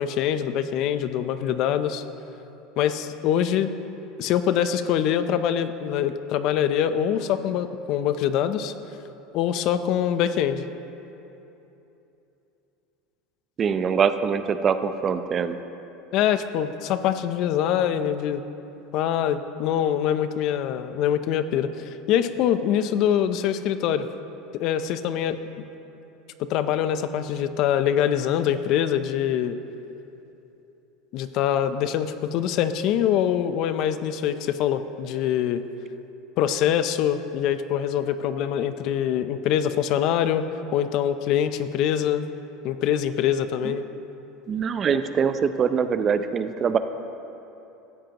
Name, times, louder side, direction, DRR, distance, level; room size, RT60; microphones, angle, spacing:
voice 1, 0.0-2.0 2.8-3.7 4.2-8.7 9.3-10.6 16.1-18.4 18.9-24.1 24.5-25.6 26.4-29.6 31.1-35.6 36.4-40.4 40.7-42.2 42.6-43.8, left 9 dB, 55° left, 11 dB, 0.6 m, -24 dB
voice 2, 13.6-15.6 43.6-43.8 44.5-46.8, right 6 dB, 30° right, 10 dB, 0.5 m, -23 dB
16.5 x 14.0 x 3.0 m, 3.0 s
supercardioid pair, 135°, 0 cm